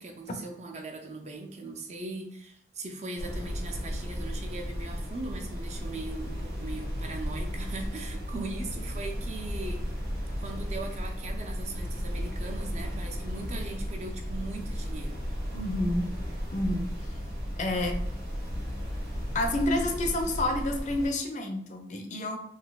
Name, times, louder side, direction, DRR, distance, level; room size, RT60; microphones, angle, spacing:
voice 1, 0.0-9.8 10.4-15.2, right 2 dB, 40° right, 3 dB, 0.4 m, -39 dB
sound 1, 3.2-21.1, equal, 55° right, 1.2 m, -34 dB
voice 2, 15.5-16.1 16.5-16.9 17.6-18.0 19.3-22.4, left 1 dB, 40° left, 4 dB, 0.4 m, -29 dB
3.9 x 2.6 x 2.3 m, 0.71 s
head